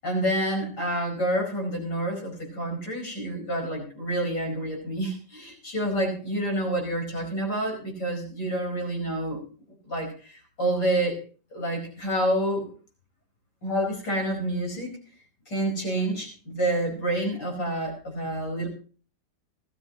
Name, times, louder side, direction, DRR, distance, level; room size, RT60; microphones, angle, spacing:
voice 1, 0.0-9.4 9.9-11.2 11.5-12.7 13.6-15.0 15.5-18.7, right 1 dB, 85° left, 0 dB, 5.4 m, -28 dB
17.0 x 14.0 x 3.0 m, 0.39 s
omnidirectional pair, 1.8 m